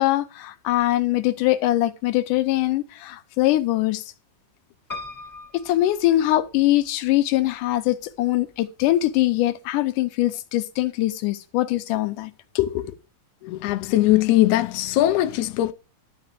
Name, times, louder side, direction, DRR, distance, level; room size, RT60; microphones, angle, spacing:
voice 1, 0.0-4.0 5.5-13.0, left 15 dB, 75° left, 2.1 m, -22 dB
Piano, 4.9-6.9 7.5-8.2 8.5-8.6 8.8-8.9, left 3 dB, 25° left, 0.4 m, -40 dB
voice 2, 13.4-15.7, left 15 dB, 90° left, 1.7 m, -20 dB
12.5 x 4.3 x 7.6 m
omnidirectional pair, 4.2 m